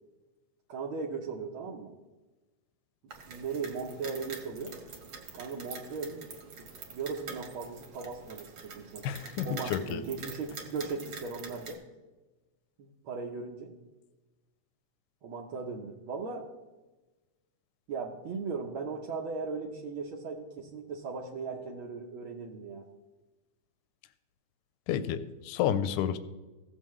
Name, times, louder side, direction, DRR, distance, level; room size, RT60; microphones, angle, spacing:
voice 1, 0.7-1.9 3.3-4.7 5.3-6.3 6.9-9.1 9.4-11.8 12.8-13.7 15.2-16.5 17.9-22.8, right 4 dB, 80° right, -1 dB, 1.1 m, -37 dB
sound 1, 3.1-11.7, right 5 dB, 55° right, 1.7 m, -46 dB
voice 2, 9.0-10.0 24.9-26.2, left 10 dB, 85° left, 12 dB, 2.0 m, -30 dB
16.5 x 7.4 x 3.1 m, 1.2 s
omnidirectional pair, 3.6 m